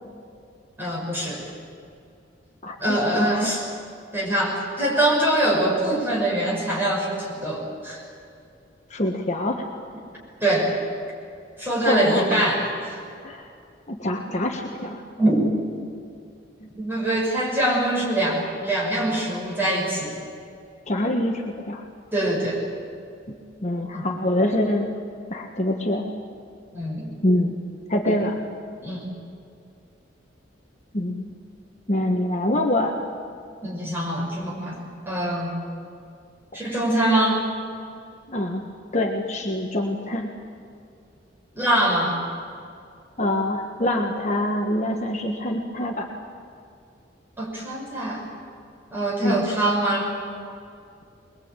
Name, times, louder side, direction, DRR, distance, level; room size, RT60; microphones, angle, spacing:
voice 1, 0.8-1.5 2.8-3.6 4.1-8.0 10.4-10.7 11.6-13.0 15.2-15.5 16.8-20.2 22.1-22.6 23.9-24.1 26.7-27.1 28.1-28.2 28.8-29.0 33.6-34.8 35.0-35.5 36.5-37.4 41.5-42.2 47.4-48.3 48.9-50.2, right 1 dB, 10° right, -4 dB, 6.4 m, -23 dB
voice 2, 2.6-3.6 8.9-9.7 11.8-12.4 13.2-13.5 13.9-15.0 16.6-16.7 20.9-21.8 23.3-24.9 25.3-26.1 27.2-27.5 27.9-28.4 30.9-31.3 31.9-33.0 38.3-38.6 38.9-40.3 43.2-46.1 49.2-49.4, left 1 dB, 35° left, 2 dB, 1.4 m, -25 dB
22.5 x 21.5 x 9.0 m, 2.4 s
head